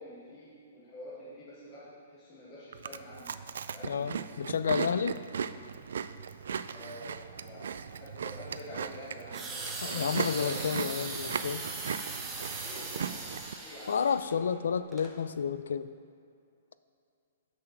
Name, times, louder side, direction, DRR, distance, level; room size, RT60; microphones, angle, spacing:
voice 1, 0.0-4.5 6.7-10.8 12.6-13.2 13.6-14.8, left 1 dB, 25° left, -9 dB, 2.2 m, -47 dB
Chewing mastication, 2.7-13.5, right 7 dB, 75° right, 0.3 m, -38 dB
voice 2, 3.8-5.2 9.9-11.6 13.9-15.9, left 6 dB, 85° left, 13 dB, 0.4 m, -30 dB
sound 1, 9.3-14.3 14.9-15.1, right 3 dB, 10° right, 0.9 m, -39 dB
7.8 x 6.2 x 6.0 m, 2.4 s
hypercardioid pair, 170°, 0 cm